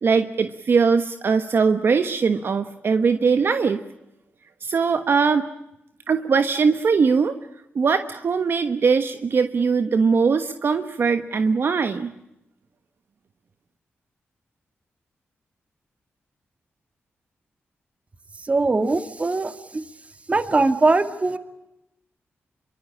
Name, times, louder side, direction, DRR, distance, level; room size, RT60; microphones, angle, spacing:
voice 1, 0.0-3.8 4.6-5.5 6.1-7.3 7.7-12.1, right 5 dB, 60° right, 9 dB, 1.3 m, -21 dB
voice 2, 18.4-19.8 20.3-21.4, right 3 dB, 30° right, 9 dB, 2.3 m, -21 dB
26.0 x 24.0 x 8.7 m, 0.87 s
wide cardioid pair, 95°, 4 cm